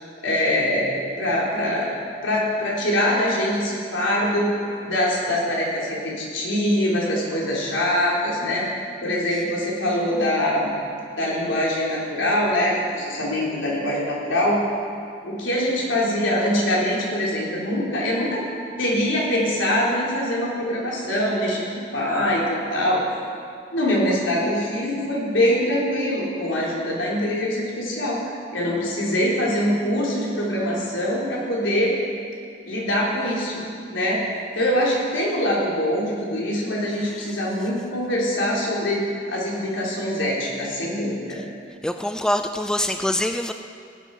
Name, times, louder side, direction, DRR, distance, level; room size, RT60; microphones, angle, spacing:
voice 1, 0.2-1.9 2.2-8.6 9.0-10.7 11.2-14.6 15.2-18.4 18.8-23.0 23.7-28.2 28.5-32.0 32.7-33.6 33.9-34.2 34.5-41.4, left 1 dB, 80° left, -5 dB, 3.7 m, -23 dB
voice 2, 41.8-43.5, left 1 dB, 5° left, 7 dB, 0.3 m, -24 dB
18.5 x 9.1 x 5.4 m, 2.3 s
head